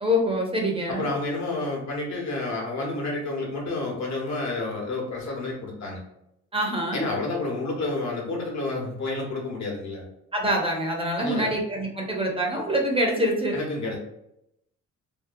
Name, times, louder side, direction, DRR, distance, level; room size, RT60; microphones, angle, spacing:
voice 1, 0.0-1.1 6.5-7.0 10.3-13.6, equal, 20° right, 0 dB, 0.6 m, -25 dB
voice 2, 0.9-6.0 6.9-10.1 11.2-11.5 13.5-14.0, left 2 dB, 65° left, -2 dB, 1.1 m, -30 dB
2.7 x 2.2 x 2.5 m, 0.81 s
cardioid pair, 90°, 30 cm